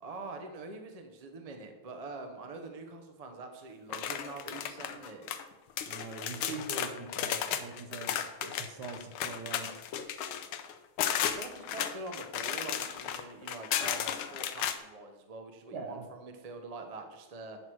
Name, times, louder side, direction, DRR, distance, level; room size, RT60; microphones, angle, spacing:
voice 1, 0.0-5.3 11.4-17.6, right 3 dB, 40° right, 5 dB, 0.5 m, -44 dB
sound 1, 3.9-5.4 5.8-14.8, left 9 dB, 85° left, 1.5 m, -34 dB
voice 2, 5.9-9.8 15.7-16.0, right 3 dB, 60° right, 5 dB, 1.6 m, -43 dB
9.5 x 6.1 x 4.7 m, 1.2 s
omnidirectional pair, 2.2 m